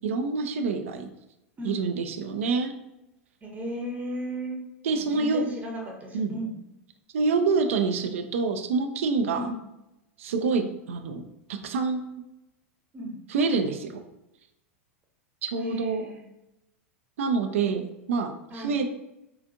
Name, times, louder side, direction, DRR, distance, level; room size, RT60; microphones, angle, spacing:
voice 1, 0.0-1.1 1.6-2.7 4.8-5.4 6.1-6.4 7.1-9.5 10.2-11.2 11.5-12.0 13.3-14.0 15.4-16.1 17.2-18.9, right 4 dB, 70° right, 7 dB, 0.4 m, -26 dB
voice 2, 3.4-4.6 5.1-6.5 9.3-9.6 10.4-10.6 12.9-13.2 15.5-16.2 18.5-18.8, right 1 dB, 20° right, -1 dB, 0.8 m, -35 dB
3.8 x 2.4 x 2.5 m, 0.90 s
hypercardioid pair, 95°, 8 cm